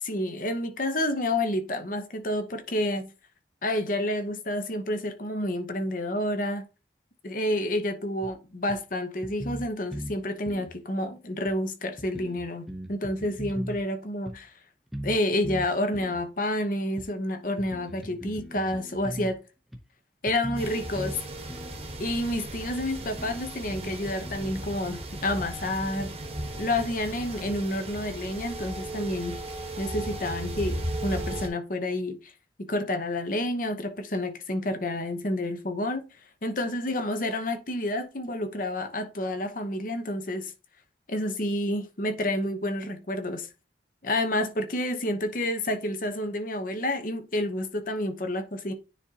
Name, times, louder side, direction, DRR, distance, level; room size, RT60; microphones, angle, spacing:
voice 1, 0.0-3.1 3.6-6.6 7.2-14.5 15.0-19.3 20.2-21.2 22.0-26.2 26.6-29.4 29.8-32.3 32.6-36.0 36.4-40.5 41.1-43.5 44.0-48.7, left 1 dB, 45° left, 0.9 m, -29 dB
sound 1, 8.2-8.3 8.7-8.8 9.2-10.2 10.5-10.7 11.5-11.6 12.0-13.8 14.3-14.4 14.9-15.2 15.4-16.2 17.0-17.1 17.6-19.3 19.7-19.8 20.3-21.2 21.5-21.8 22.5-22.6 23.0-24.3, equal, ahead, 0.7 m, -38 dB
sound 2, 20.6-31.5, right 1 dB, 30° right, 1.1 m, -36 dB
9.6 x 3.7 x 2.8 m
head